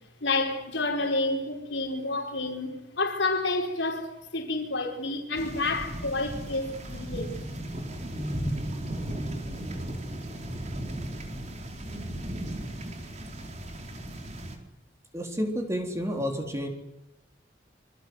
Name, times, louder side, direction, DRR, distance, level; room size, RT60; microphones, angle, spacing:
voice 1, 0.2-7.4, left 2 dB, 80° left, 5.0 m, -29 dB
sound 1, 5.3-14.6, right 1 dB, 40° right, 4.4 m, -35 dB
voice 2, 15.1-16.7, equal, 15° right, 3.9 m, -30 dB
26.5 x 25.5 x 8.0 m
head